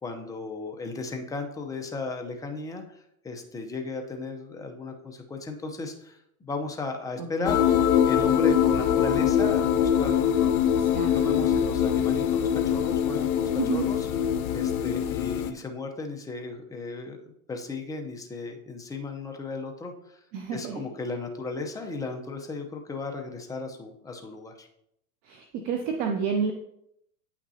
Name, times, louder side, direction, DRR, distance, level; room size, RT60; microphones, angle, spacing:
voice 1, 0.0-7.8 8.1-10.6 11.1-14.1 14.5-17.2 17.5-20.2 20.5-24.7, left 3 dB, 10° left, 3 dB, 0.7 m, -35 dB
voice 2, 7.2-7.6 10.8-11.1 13.6-13.9 20.3-20.9 25.2-26.5, right 6 dB, 25° right, 4 dB, 0.3 m, -30 dB
sound 1, 7.5-15.5, left 9 dB, 75° left, 0.8 m, -23 dB
8.7 x 6.0 x 2.8 m, 0.77 s
hypercardioid pair, 125°, 45 cm